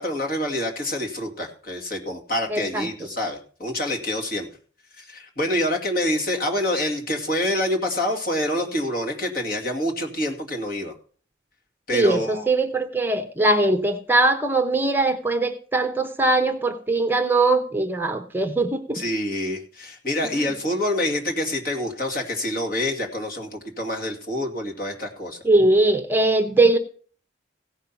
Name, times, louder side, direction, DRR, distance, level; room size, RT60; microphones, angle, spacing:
voice 1, 0.0-4.5 5.0-10.9 11.9-12.5 18.9-25.4, left 1 dB, 50° left, 2 dB, 2.3 m, -26 dB
voice 2, 2.5-2.9 11.9-19.0 20.4-20.5 25.4-26.8, right 2 dB, 10° right, 6 dB, 0.8 m, -21 dB
16.5 x 5.7 x 5.7 m, 0.43 s
head